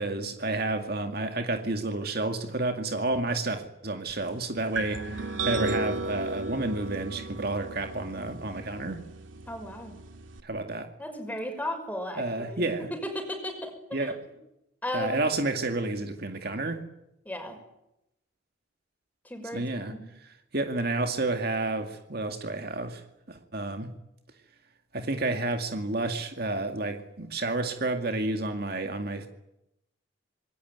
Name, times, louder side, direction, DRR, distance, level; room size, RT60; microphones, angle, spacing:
voice 1, 0.0-9.0 10.4-10.9 12.2-12.9 13.9-14.2 14.9-16.8 19.5-19.9 20.5-23.0 23.3-23.9 24.9-29.3, right 2 dB, 50° right, 5 dB, 2.2 m, -30 dB
sound 1, 4.7-10.4, right 2 dB, 85° right, 2.4 m, -35 dB
voice 2, 9.5-9.9 11.0-14.1 14.8-15.2 17.2-17.6 19.2-20.0, left 1 dB, 10° left, 5 dB, 6.0 m, -35 dB
26.5 x 21.0 x 9.5 m, 0.86 s
head